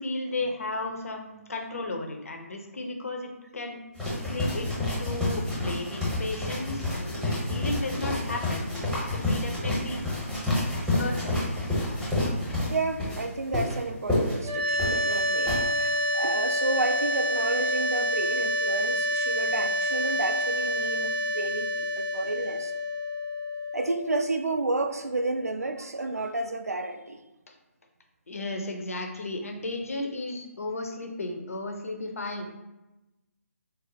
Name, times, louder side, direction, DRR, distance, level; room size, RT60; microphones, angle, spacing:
voice 1, 0.0-3.8 4.3-8.7 9.1-10.0 11.0-11.4 27.5-27.6 28.3-32.6, left 2 dB, 70° left, 3 dB, 0.6 m, -34 dB
sound 1, 4.0-15.6, left 1 dB, ahead, 0.8 m, -29 dB
voice 2, 12.7-22.7 23.7-27.2, right 2 dB, 85° right, 7 dB, 0.4 m, -31 dB
sound 2, 14.4-25.5, equal, 35° right, 0.6 m, -28 dB
4.0 x 2.0 x 2.7 m, 1.0 s
figure-of-eight pair, 140°, 8 cm